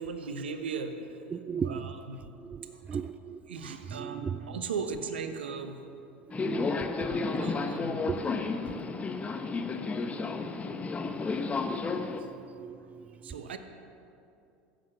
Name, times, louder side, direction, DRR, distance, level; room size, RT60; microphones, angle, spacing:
voice 1, 0.0-1.2 1.6-2.2 2.7-3.0 3.5-5.8 7.0-8.1 12.2-12.3 13.2-13.6, right 5 dB, 85° right, 8 dB, 1.0 m, -38 dB
voice 2, 1.3-1.9 2.5-3.4 3.9-4.6 6.4-6.9 8.1-8.2 12.6-12.8, right 6 dB, 25° right, 14 dB, 0.4 m, -35 dB
Subway metro underground, 6.3-12.2, left 4 dB, 25° left, 1.0 m, -32 dB
15.0 x 7.8 x 6.6 m, 2.6 s
hypercardioid pair, 80°, 6 cm